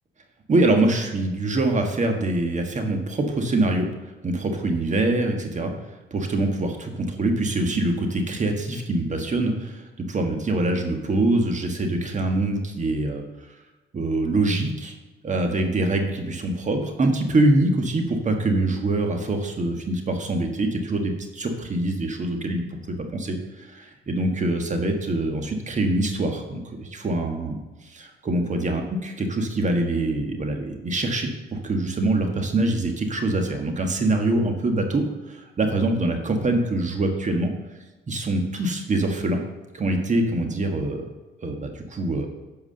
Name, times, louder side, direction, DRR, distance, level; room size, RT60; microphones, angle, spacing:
voice 1, 0.5-3.9 4.2-5.7 6.1-13.2 13.9-14.9 15.2-22.8 23.1-27.6 27.8-37.5 38.1-39.4 39.7-41.1 41.4-42.3, right 2 dB, 35° right, 4 dB, 1.5 m, -24 dB
11.0 x 4.8 x 6.6 m, 1.1 s
cardioid pair, 90°, 20 cm